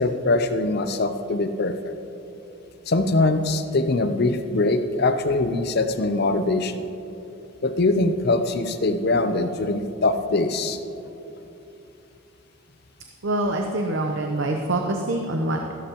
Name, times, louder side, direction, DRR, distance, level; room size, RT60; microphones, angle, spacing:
voice 1, 0.0-1.9 2.9-6.8 7.6-10.8, left 2 dB, 50° left, 9 dB, 0.6 m, -22 dB
voice 2, 13.2-15.7, right 1 dB, 70° right, 3 dB, 0.8 m, -25 dB
15.0 x 12.5 x 3.0 m, 2.8 s
head